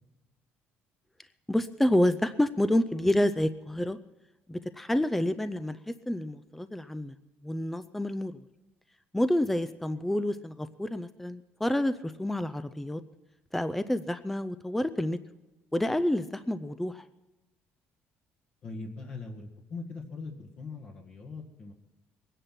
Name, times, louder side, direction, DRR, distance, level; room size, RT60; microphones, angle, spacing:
voice 1, 1.5-4.0 4.5-5.8 6.1-7.1 7.4-8.4 9.1-13.0 13.5-15.2 15.7-17.1, left 1 dB, 5° left, 12 dB, 0.5 m, -28 dB
voice 2, 18.6-21.7, left 3 dB, 45° left, -1 dB, 1.7 m, -41 dB
22.5 x 10.0 x 5.8 m, 1.0 s
cardioid pair, 130°, 4 cm